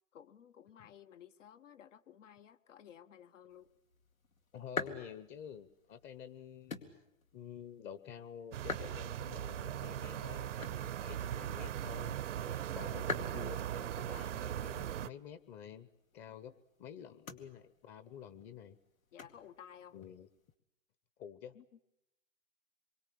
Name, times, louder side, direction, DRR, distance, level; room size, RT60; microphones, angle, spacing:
voice 1, 0.1-3.7 12.4-12.7 16.2-16.5 19.1-20.0 21.5-21.8, left 9 dB, 65° left, 9 dB, 1.2 m, -56 dB
sound 1, 3.5-20.6, left 4 dB, 90° left, 2.5 m, -48 dB
voice 2, 4.5-6.8 7.3-12.2 12.7-15.9 16.1-16.5 16.8-18.8 19.9-20.3 21.2-21.5, left 8 dB, 25° left, 14 dB, 1.0 m, -49 dB
sound 2, 8.5-15.1, right 11 dB, 60° right, 0.9 m, -39 dB
26.5 x 23.5 x 8.5 m, 0.85 s
hypercardioid pair, 120°, 41 cm